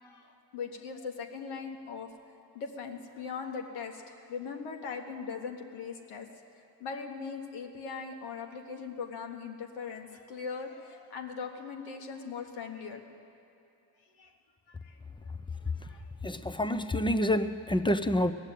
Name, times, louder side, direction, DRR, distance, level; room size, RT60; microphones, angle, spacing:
voice 1, 0.0-2.1 2.6-6.3 6.8-13.0 14.2-14.3 14.7-15.0 15.8-16.1 17.0-17.1, left 5 dB, 75° left, 3 dB, 1.6 m, -40 dB
voice 2, 16.2-18.3, left 1 dB, 10° left, 11 dB, 0.6 m, -27 dB
17.5 x 7.4 x 9.2 m, 2.7 s
hypercardioid pair, 60°, 49 cm